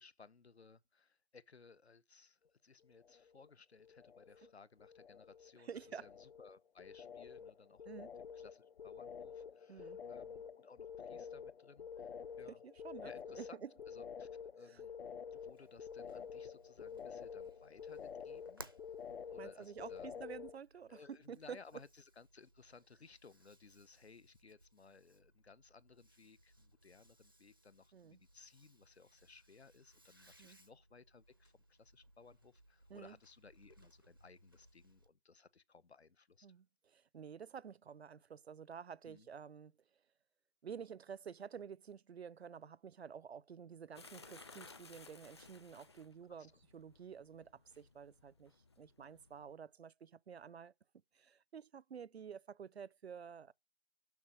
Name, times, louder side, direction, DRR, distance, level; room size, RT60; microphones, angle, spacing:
voice 1, 0.0-7.9 8.2-12.1 12.4-12.6 13.0-14.3 14.6-14.9 15.3-18.7 19.3-20.1 20.9-36.5 39.0-39.3 46.4-46.5, left 4 dB, 85° left, 1.0 m, -61 dB
sound 1, 2.9-3.5 3.8-4.5 4.8-20.6, left 7 dB, 65° left, 0.6 m, -49 dB
voice 2, 5.6-6.1 7.9-8.1 9.7-10.0 12.5-13.1 13.4-13.7 19.4-21.6 27.9-28.2 30.4-30.6 32.9-33.2 36.4-39.7 40.6-50.7 51.1-53.5, right 7 dB, 80° right, 0.6 m, -50 dB
sound 2, 15.3-35.1, right 1 dB, 20° right, 0.4 m, -64 dB
sound 3, 43.9-49.5, left 4 dB, 25° left, 0.7 m, -59 dB
7.0 x 6.2 x 7.4 m
figure-of-eight pair, 160°, 31 cm